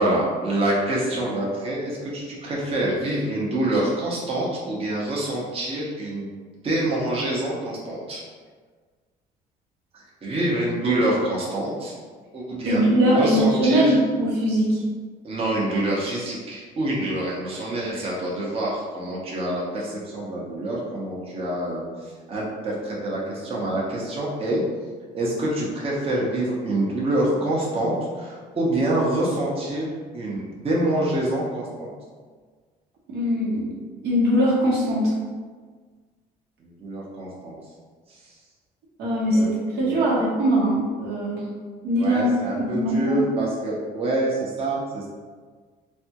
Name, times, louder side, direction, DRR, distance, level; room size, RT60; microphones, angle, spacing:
voice 1, 0.0-6.4 6.6-8.2 9.9-11.9 12.3-14.0 15.2-21.9 22.3-24.6 25.1-29.9 30.1-31.9 36.6-37.5 39.3-39.5 39.8-40.2 42.0-45.1, right 1 dB, 35° right, -5 dB, 0.7 m, -26 dB
voice 2, 12.7-14.8 33.1-33.7 34.0-35.1 39.0-41.4 41.8-43.2, equal, 80° right, -5 dB, 1.0 m, -21 dB
3.3 x 2.2 x 2.8 m, 1.5 s
cardioid pair, 110°, 17 cm